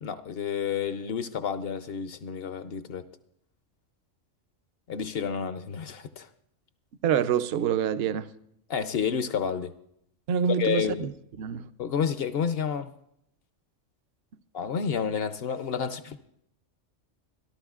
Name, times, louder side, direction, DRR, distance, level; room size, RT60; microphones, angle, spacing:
voice 1, 0.0-3.0 4.9-6.3 8.7-9.7 10.5-11.1 11.8-12.9 14.5-16.2, left 7 dB, 60° left, 0.8 m, -30 dB
voice 2, 7.0-8.3 10.3-11.1 11.4-11.6, right 8 dB, 60° right, 0.8 m, -26 dB
27.0 x 12.0 x 2.4 m
omnidirectional pair, 1.3 m